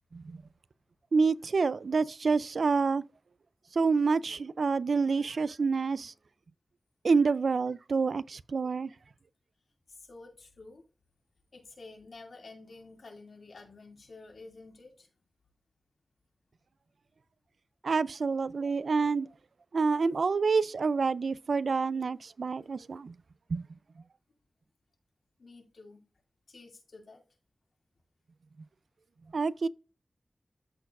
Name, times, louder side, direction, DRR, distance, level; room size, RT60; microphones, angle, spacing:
voice 1, 1.1-3.0 3.8-6.1 7.0-8.9 17.8-19.3 19.7-23.1 23.5-23.6 29.3-29.7, right 4 dB, 75° right, 0.4 m, -27 dB
voice 2, 9.9-10.8 11.5-15.1 25.4-26.0 26.5-27.2, left 3 dB, 75° left, 2.4 m, -50 dB
13.5 x 4.6 x 2.5 m
wide cardioid pair, 105°, 0 cm